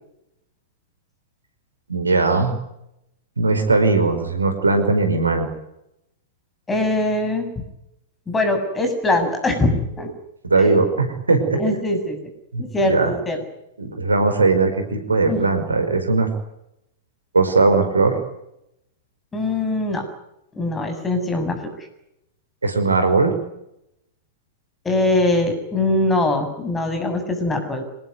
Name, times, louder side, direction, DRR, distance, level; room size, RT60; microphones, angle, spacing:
voice 1, 1.9-2.6 3.4-5.5 10.4-11.6 12.5-13.1 13.8-16.3 17.3-18.2 22.6-23.3, right 3 dB, 75° right, 8 dB, 5.1 m, -19 dB
voice 2, 6.7-7.5 8.3-10.1 10.6-10.7 11.5-12.2 12.6-13.4 15.3-15.5 19.3-20.1 20.6-21.9 24.8-27.8, left 2 dB, 15° left, 7 dB, 7.2 m, -22 dB
26.5 x 19.5 x 9.5 m, 0.83 s
figure-of-eight pair, 100°, 0 cm